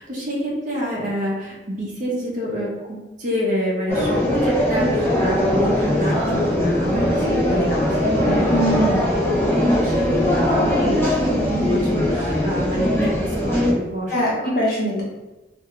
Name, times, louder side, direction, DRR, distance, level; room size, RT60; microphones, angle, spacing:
voice 1, 0.0-7.3 8.2-8.5 9.1-14.1 14.4-14.5, equal, 45° right, -4 dB, 0.7 m, -27 dB
sound 1, 3.9-13.7, left 1 dB, 15° left, 0.6 m, -20 dB
voice 2, 7.2-7.9 8.5-9.0 14.1-15.0, equal, 55° left, -5 dB, 0.8 m, -23 dB
2.5 x 2.2 x 3.0 m, 1.1 s
head